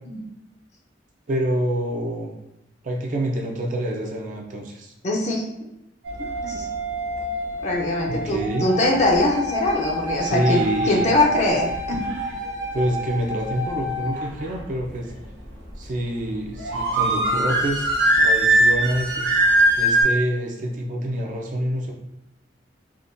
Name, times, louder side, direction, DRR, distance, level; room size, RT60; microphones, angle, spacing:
voice 1, 1.3-2.4 2.8-4.9 8.1-8.7 10.2-11.1 12.7-15.1 15.8-19.3 19.8-21.9, right 1 dB, 45° right, 1 dB, 0.4 m, -27 dB
voice 2, 5.0-5.4 6.4-6.7 7.6-10.6 10.9-12.2, left 2 dB, 40° left, -1 dB, 0.4 m, -22 dB
sound 1, 6.0-20.0, right 1 dB, 65° right, 0.8 m, -24 dB
3.5 x 2.1 x 2.5 m, 0.88 s
head